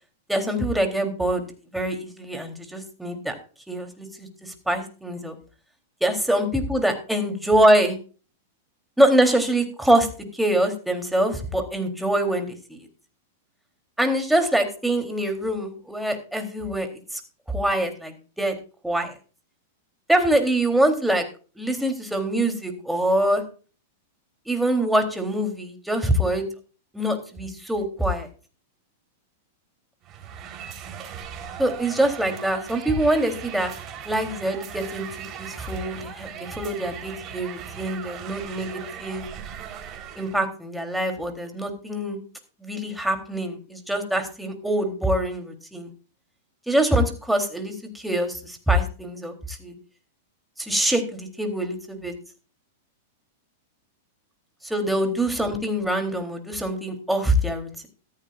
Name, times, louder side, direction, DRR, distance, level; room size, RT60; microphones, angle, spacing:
voice 1, 0.3-1.5 1.7-3.4 3.7-5.3 6.0-7.9 9.0-10.1 10.4-12.8 14.0-16.9 17.5-18.5 18.8-19.1 20.1-21.2 21.6-23.4 24.5-26.5 26.9-28.3 31.6-33.7 34.1-35.1 35.4-39.2 40.2-42.2 42.6-45.9 46.7-49.7 50.6-52.1 54.6-57.9, right 1 dB, 5° right, 5 dB, 3.6 m, -24 dB
sound 1, 30.0-40.4, right 8 dB, 35° right, 4.1 m, -38 dB
15.0 x 14.0 x 2.6 m, 0.36 s
hypercardioid pair, 115°, 0 cm